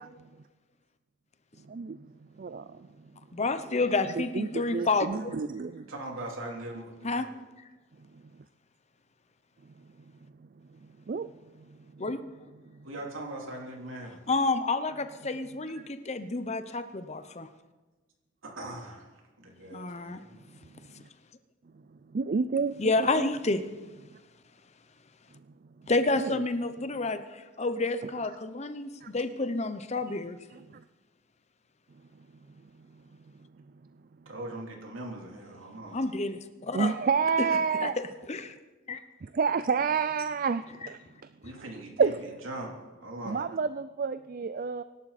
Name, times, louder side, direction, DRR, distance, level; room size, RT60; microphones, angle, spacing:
voice 1, 1.7-2.0 2.4-2.9 4.1-5.9 10.8-11.3 11.7-11.8 12.7-12.9 21.0-21.1 22.1-23.3 26.2-26.4 29.0-29.1 30.1-30.2 30.5-30.8 36.7-38.0 39.2-41.0 41.6-41.7 42.0-42.4 43.2-44.8, right 5 dB, 45° right, 12 dB, 0.4 m, -29 dB
voice 2, 3.3-5.3 7.0-7.3 12.0-12.2 14.3-17.5 19.7-20.2 22.8-23.6 25.9-30.4 35.9-36.9 37.8-37.9 38.3-38.5 38.9-39.0, left 3 dB, 35° left, 10 dB, 0.8 m, -29 dB
voice 3, 5.9-7.3 12.8-14.2 18.4-19.1 19.4-20.3 34.3-36.1 41.4-42.1 42.4-43.5, right 1 dB, 75° right, 0 dB, 3.5 m, -40 dB
24.0 x 12.0 x 4.2 m, 1.2 s
head